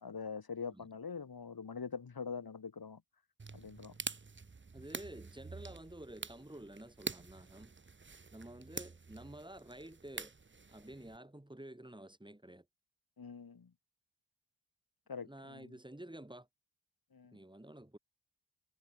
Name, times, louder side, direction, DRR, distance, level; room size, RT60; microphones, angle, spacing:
voice 1, 0.0-3.0 3.5-4.0 13.2-13.7 15.1-15.7 17.1-17.4, left 5 dB, 50° left, 2.2 m, -44 dB
sound 1, 3.4-11.2, right 4 dB, 25° right, 0.9 m, -47 dB
voice 2, 4.7-7.7 8.3-10.3 10.7-12.6 15.2-16.5 17.3-18.0, right 1 dB, 10° right, 3.2 m, -51 dB
cardioid pair, 55°, 45 cm